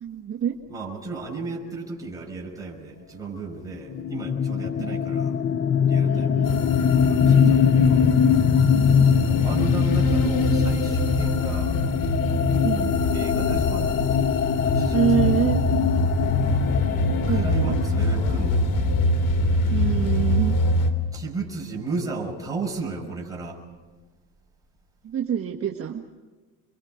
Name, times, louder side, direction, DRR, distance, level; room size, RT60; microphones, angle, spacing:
voice 1, 0.0-0.5 4.8-5.0 6.1-6.6 7.2-7.5 8.7-9.1 12.6-12.9 14.9-15.6 17.3-17.7 19.7-20.5 25.0-26.0, right 9 dB, 35° right, 2 dB, 1.5 m, -26 dB
voice 2, 0.7-5.4 5.9-6.5 7.0-8.1 9.2-11.7 13.1-14.0 14.6-15.3 17.1-18.7 21.1-23.6, right 3 dB, 10° right, -2 dB, 6.0 m, -34 dB
sound 1, 3.9-19.5, left 7 dB, 30° left, 0.8 m, -22 dB
sound 2, 6.4-20.9, left 1 dB, 60° left, 3.2 m, -24 dB
30.0 x 23.5 x 5.1 m, 1.3 s
cardioid pair, 140°, 37 cm